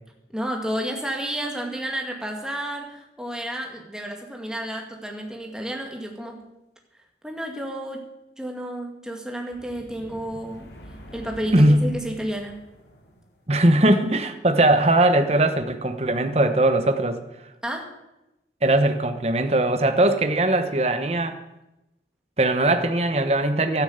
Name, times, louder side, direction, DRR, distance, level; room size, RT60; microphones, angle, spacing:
voice 1, 0.3-6.4 7.2-8.1 8.4-10.7 11.1-12.6 17.6-17.9, right 1 dB, 5° right, 1 dB, 2.2 m, -31 dB
sound 1, 9.5-13.5, equal, 75° left, 3.1 m, -45 dB
voice 2, 11.5-11.9 13.5-17.2 18.6-21.4 22.4-23.8, right 1 dB, 35° right, 8 dB, 1.1 m, -20 dB
12.5 x 10.5 x 8.1 m, 0.93 s
head